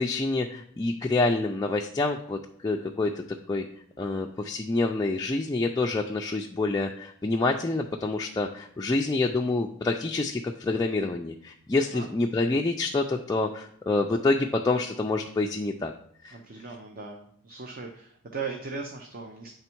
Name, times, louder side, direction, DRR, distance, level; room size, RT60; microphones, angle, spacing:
voice 1, 0.0-3.1 3.5-3.6 4.0-15.9 16.2-16.4, left 2 dB, 15° left, 1 dB, 0.3 m, -27 dB
voice 2, 16.3-19.5, right 4 dB, 40° right, 3 dB, 0.6 m, -38 dB
9.1 x 3.5 x 4.4 m, 0.65 s
head